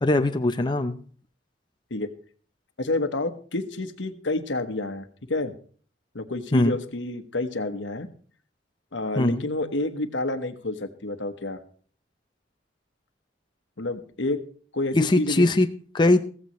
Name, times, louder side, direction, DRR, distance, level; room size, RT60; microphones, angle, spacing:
voice 1, 0.0-1.0 6.5-6.8 9.2-9.4 14.9-15.7 15.9-16.2, left 2 dB, 25° left, 6 dB, 0.6 m, -20 dB
voice 2, 2.8-5.5 6.1-8.1 8.9-11.6 13.8-14.4 14.7-15.4, left 2 dB, 80° left, 9 dB, 1.2 m, -29 dB
15.0 x 15.0 x 3.1 m, 0.42 s
head